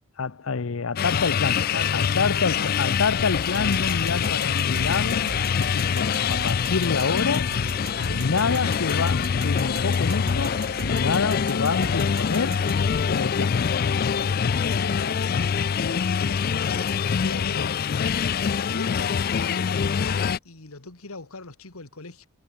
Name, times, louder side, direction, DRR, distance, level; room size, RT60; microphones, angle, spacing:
voice 1, 0.2-1.6 1.9-7.5 8.1-12.6 13.1-13.6, left 5 dB, 75° left, 0.7 m, -27 dB
sound 1, 1.0-20.4, left 7 dB, 45° left, 0.3 m, -24 dB
voice 2, 1.5-2.7 3.7-4.4 8.0-8.9 14.7-16.8 17.2-17.8 18.7-22.3, left 3 dB, 90° left, 2.2 m, -39 dB
sound 2, 3.4-12.8, right 6 dB, 70° right, 0.5 m, -40 dB
sound 3, 5.9-17.1, left 2 dB, 25° left, 1.3 m, -47 dB
head